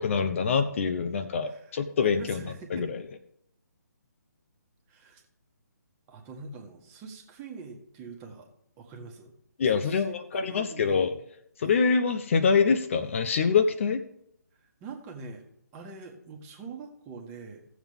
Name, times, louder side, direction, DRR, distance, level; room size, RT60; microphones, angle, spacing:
voice 1, 0.0-3.0 9.6-11.1 11.6-14.0, left 5 dB, 45° left, 10 dB, 0.7 m, -25 dB
voice 2, 2.0-2.9 4.9-5.2 6.1-8.5 8.8-9.3 9.7-10.1 10.4-11.1 14.6-15.4 15.7-17.6, right 4 dB, 20° right, 2 dB, 1.5 m, -44 dB
16.5 x 7.2 x 3.6 m, 0.74 s
figure-of-eight pair, 150°, 10 cm